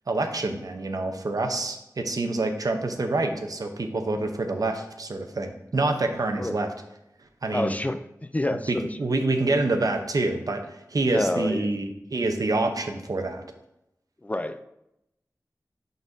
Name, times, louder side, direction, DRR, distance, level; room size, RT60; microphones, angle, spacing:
voice 1, 0.1-6.7 7.4-7.8 8.5-13.5, right 2 dB, 70° right, 5 dB, 0.7 m, -27 dB
voice 2, 7.5-8.9 11.0-11.8 14.2-14.6, left 1 dB, 20° left, 10 dB, 0.4 m, -28 dB
11.0 x 4.0 x 2.7 m, 0.85 s
wide cardioid pair, 50°, 6 cm